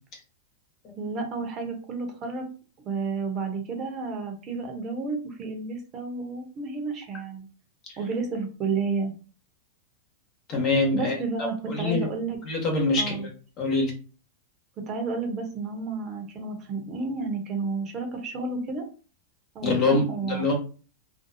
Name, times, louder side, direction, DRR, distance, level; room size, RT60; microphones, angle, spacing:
voice 1, 1.0-2.5 2.9-7.5 8.0-9.1 10.9-12.4 13.0-13.3 14.8-18.8 19.5-20.5, right 4 dB, 35° right, 3 dB, 0.8 m, -31 dB
voice 2, 10.5-11.1 11.4-12.0 12.4-13.3 13.6-13.9 19.6-20.5, left 3 dB, 40° left, 1 dB, 1.1 m, -24 dB
2.6 x 2.2 x 2.6 m, 0.37 s
hypercardioid pair, 115°, 0 cm